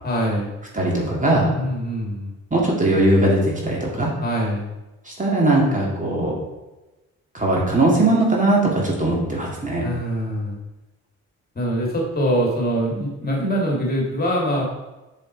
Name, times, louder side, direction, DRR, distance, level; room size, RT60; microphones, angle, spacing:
voice 1, 0.0-0.5 1.6-2.3 4.2-4.7 9.8-10.6 11.5-14.6, equal, 30° left, -2 dB, 2.9 m, -23 dB
voice 2, 0.7-1.5 2.5-4.1 5.0-6.3 7.3-9.8, right 2 dB, 25° right, -3 dB, 2.6 m, -19 dB
7.0 x 6.6 x 4.7 m, 1.1 s
cardioid pair, 90°, 30 cm